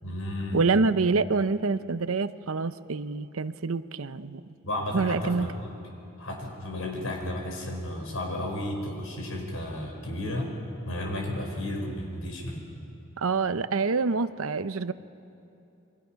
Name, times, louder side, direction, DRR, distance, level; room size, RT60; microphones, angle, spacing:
voice 1, 0.0-0.6 4.6-5.7 6.2-10.5 10.8-12.7, left 1 dB, 80° left, 1 dB, 5.0 m, -33 dB
voice 2, 0.5-4.4 4.9-5.5 13.2-14.9, right 4 dB, 75° right, 13 dB, 0.7 m, -26 dB
29.0 x 23.0 x 5.8 m, 2.7 s
head